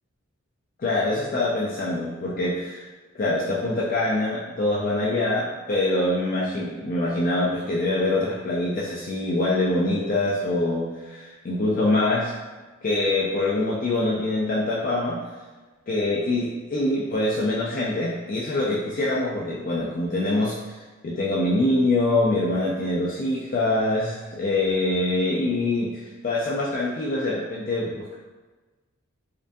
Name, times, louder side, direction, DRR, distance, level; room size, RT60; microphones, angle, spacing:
voice 1, 0.8-2.8 3.2-12.3 12.8-15.2 15.9-20.5 21.0-28.1, left 2 dB, 40° left, -5 dB, 0.3 m, -24 dB
2.5 x 2.1 x 2.5 m, 1.3 s
head